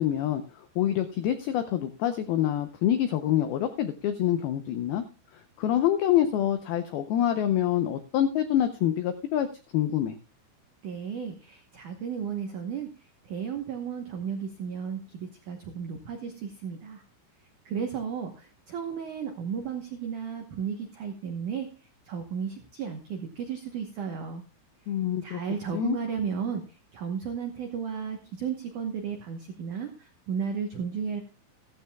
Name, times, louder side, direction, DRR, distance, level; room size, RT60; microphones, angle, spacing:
voice 1, 0.0-5.0 5.6-9.5 9.7-10.2 24.9-25.4 25.7-26.0, left 11 dB, 85° left, 9 dB, 2.1 m, -26 dB
voice 2, 10.8-12.9 13.2-17.0 17.6-21.7 22.0-24.4 25.2-31.2, right 7 dB, 90° right, 5 dB, 1.7 m, -34 dB
15.0 x 15.0 x 2.3 m, 0.34 s
omnidirectional pair, 5.4 m